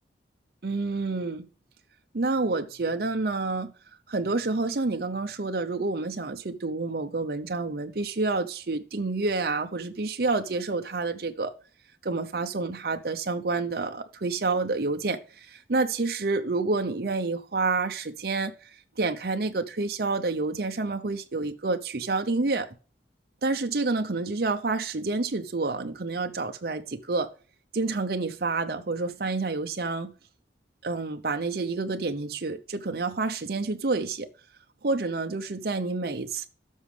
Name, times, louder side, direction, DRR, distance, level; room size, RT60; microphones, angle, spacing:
voice 1, 0.6-1.5 2.1-3.7 4.1-11.5 12.0-22.7 23.4-27.3 27.7-30.1 30.8-34.3 34.8-36.5, right 3 dB, 60° right, 0.7 m, -28 dB
12.5 x 6.3 x 3.3 m
head